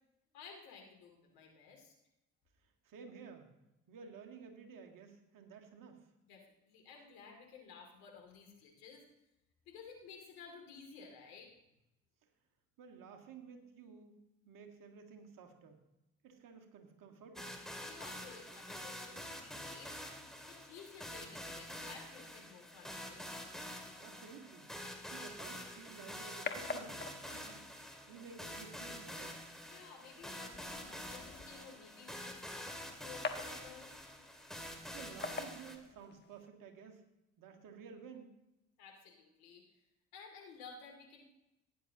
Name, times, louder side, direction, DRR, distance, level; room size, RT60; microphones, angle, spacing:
voice 1, 0.3-1.9 6.2-9.0 9.7-11.5 17.8-23.2 29.7-33.9 38.8-39.8 40.1-41.3, left 5 dB, 75° left, 1 dB, 2.7 m, -55 dB
voice 2, 2.8-3.5 3.9-6.1 12.8-14.1 14.5-15.8 16.2-17.5 24.0-24.7 25.1-29.4 34.6-37.0 37.4-38.3, right 6 dB, 60° right, 4 dB, 1.9 m, -53 dB
sound 1, 17.4-35.8, equal, ahead, 2.3 m, -47 dB
sound 2, 25.5-36.5, left 4 dB, 30° left, 1.3 m, -48 dB
16.0 x 10.0 x 2.9 m, 0.90 s
hypercardioid pair, 50°, 37 cm